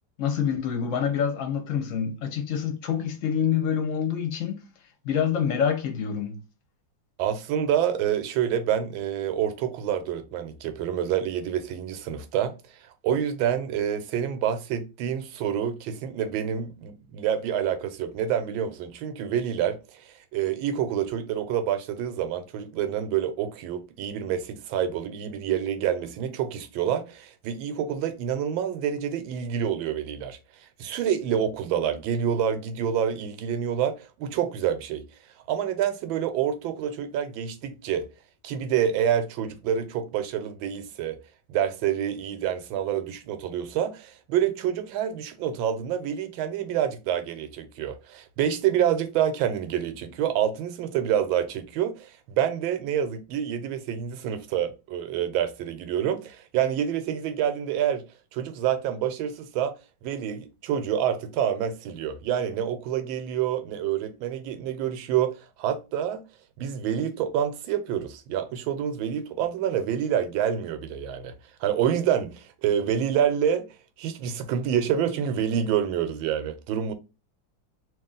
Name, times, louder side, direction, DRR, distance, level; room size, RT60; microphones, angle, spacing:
voice 1, 0.2-4.7 5.0-6.4, left 8 dB, 55° left, 1.0 m, -26 dB
voice 2, 7.2-12.6 13.0-35.0 35.5-38.1 38.4-41.2 41.5-58.0 58.3-59.7 60.0-66.2 66.6-71.3 71.6-73.7 74.0-76.9, right 9 dB, 90° right, 1.4 m, -27 dB
3.0 x 2.9 x 3.7 m
omnidirectional pair, 2.1 m